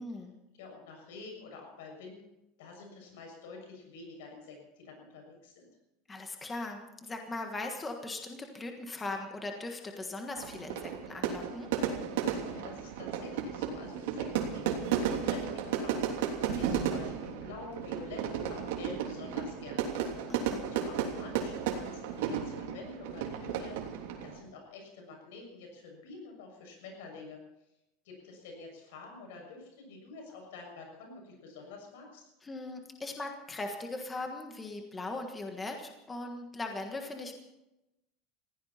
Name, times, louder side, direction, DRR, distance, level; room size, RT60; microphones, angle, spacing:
voice 1, 0.0-0.4 6.1-11.7 16.4-16.8 20.3-20.6 32.4-37.3, left 2 dB, 10° left, 3 dB, 1.5 m, -39 dB
voice 2, 0.5-2.3 2.6-5.7 12.4-19.9 20.6-23.9 24.2-27.4 28.0-32.3, left 3 dB, 85° left, 1 dB, 6.7 m, -48 dB
Fire / Fireworks, 10.4-24.4, right 8 dB, 80° right, 3.1 m, -34 dB
21.0 x 16.0 x 4.3 m, 0.91 s
supercardioid pair, 180°, 0 cm